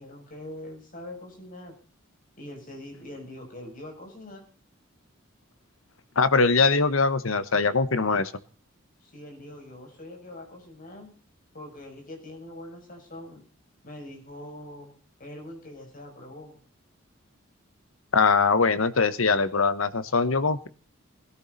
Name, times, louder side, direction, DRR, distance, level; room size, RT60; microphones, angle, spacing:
voice 1, 0.0-1.8 2.4-4.4 9.0-11.1 11.5-13.4 13.8-14.9 15.2-16.6, left 1 dB, 40° left, 2 dB, 6.7 m, -43 dB
voice 2, 6.2-8.3 18.1-20.7, left 4 dB, 75° left, 14 dB, 1.2 m, -22 dB
21.0 x 13.0 x 4.1 m, 0.40 s
head